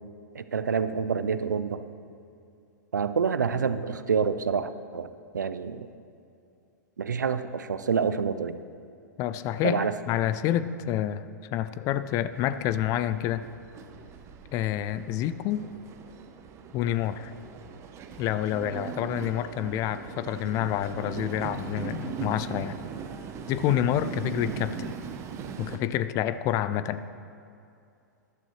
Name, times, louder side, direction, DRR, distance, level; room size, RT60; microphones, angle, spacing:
voice 1, 0.3-1.8 2.9-5.1 5.3-5.9 7.0-8.6 9.6-9.9, right 6 dB, 80° right, 12 dB, 0.6 m, -27 dB
voice 2, 9.2-11.2 11.5-13.5 14.5-15.7 16.7-17.3 18.2-22.8 23.5-24.9 25.6-27.0, left 11 dB, 35° left, 14 dB, 0.4 m, -28 dB
Train, 12.3-25.8, right 6 dB, 30° right, 0.9 m, -39 dB
14.5 x 11.5 x 3.2 m, 2.5 s
hypercardioid pair, 105°, 10 cm